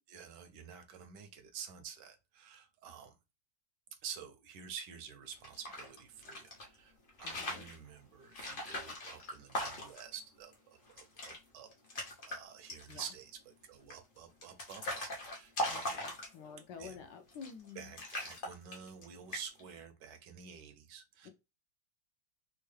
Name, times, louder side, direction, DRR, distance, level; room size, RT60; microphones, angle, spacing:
voice 1, 0.1-3.2 4.0-16.0 16.8-17.0 17.7-21.3, right 7 dB, 75° right, 1.2 m, -49 dB
sound 1, 5.3-6.7 7.1-7.8 8.3-10.1 10.5-10.6 10.9-11.4 11.7-12.4 12.7-13.2 13.9-16.6 17.3-17.7 18.0-19.0 19.3-19.7, left 1 dB, 45° left, 0.7 m, -40 dB
voice 2, 7.2-7.7 12.9-13.0 15.7-18.0 21.2-21.3, left 6 dB, 75° left, 1.2 m, -49 dB
3.6 x 2.2 x 3.2 m
omnidirectional pair, 2.1 m